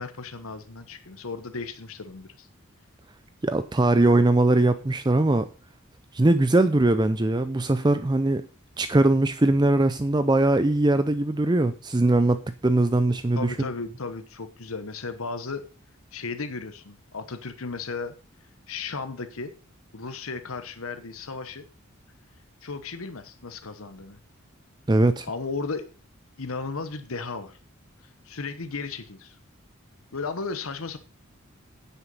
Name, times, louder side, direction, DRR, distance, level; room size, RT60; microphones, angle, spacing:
voice 1, 0.0-2.5 13.4-15.6 16.1-18.1 18.7-19.5 19.9-21.7 22.6-24.2 25.2-25.9 26.4-27.6 28.2-29.4 30.1-31.0, left 4 dB, 75° left, 1.0 m, -35 dB
voice 2, 3.4-5.5 6.1-8.5 8.8-13.7 24.9-25.3, right 2 dB, 20° right, 0.5 m, -21 dB
10.0 x 8.1 x 5.5 m
head